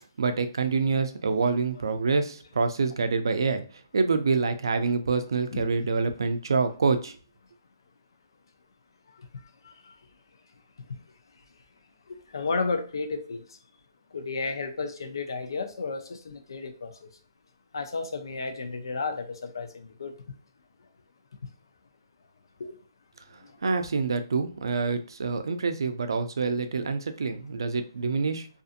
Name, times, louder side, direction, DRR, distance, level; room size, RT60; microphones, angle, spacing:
voice 1, 0.2-3.6 3.9-7.1 23.6-28.5, right 4 dB, 85° right, 0.4 m, -26 dB
voice 2, 12.1-13.4 14.1-17.1 17.7-20.1 22.6-22.8, left 4 dB, 80° left, 0.5 m, -33 dB
2.6 x 2.5 x 2.5 m
hypercardioid pair, 170°, 2 cm